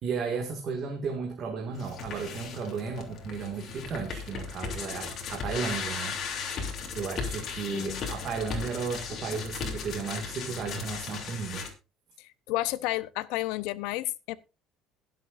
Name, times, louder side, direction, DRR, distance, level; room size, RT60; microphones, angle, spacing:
voice 1, 0.0-6.2 6.9-11.6, right 5 dB, 40° right, 2.0 m, -34 dB
sound 1, 1.7-11.7, left 5 dB, 40° left, 3.1 m, -36 dB
voice 2, 7.7-8.1 12.2-14.4, left 17 dB, 80° left, 0.8 m, -32 dB
21.5 x 7.7 x 2.6 m
cardioid pair, 155°, 0 cm